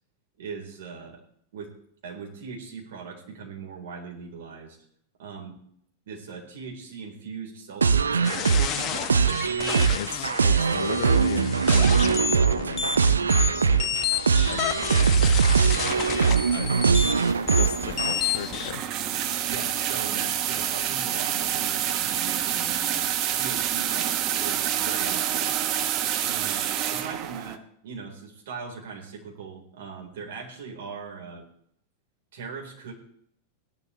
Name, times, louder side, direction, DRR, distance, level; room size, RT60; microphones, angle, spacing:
voice 1, 0.4-1.2 1.5-1.7 2.0-4.8 5.2-5.6 6.1-9.9 10.5-10.8 14.7-15.5 17.0-17.4 19.5-25.5 26.2-31.4 32.3-32.9, right 5 dB, 55° right, 0 dB, 4.1 m, -40 dB
sound 1, 7.8-18.1, right 6 dB, 75° right, 0.5 m, -22 dB
sound 2, 8.2-18.7, left 7 dB, 30° left, 1.2 m, -31 dB
voice 2, 9.9-14.0 14.5-17.2 17.6-18.9, left 10 dB, 60° left, 14 dB, 0.6 m, -37 dB
sound 3, 15.8-27.6, right 10 dB, 40° right, 0.9 m, -28 dB
17.5 x 11.0 x 3.3 m, 0.67 s
figure-of-eight pair, 90°, 0 cm